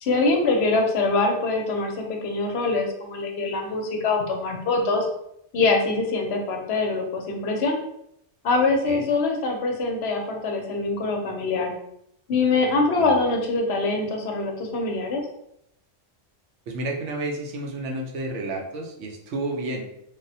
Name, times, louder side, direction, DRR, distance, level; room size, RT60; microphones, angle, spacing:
voice 1, 0.0-5.1 5.5-7.8 8.4-11.7 12.3-15.2, left 3 dB, 70° left, 2 dB, 0.8 m, -24 dB
voice 2, 12.7-13.2 16.7-19.9, right 2 dB, 80° right, 1 dB, 0.9 m, -31 dB
3.3 x 2.1 x 2.7 m, 0.78 s
omnidirectional pair, 1.2 m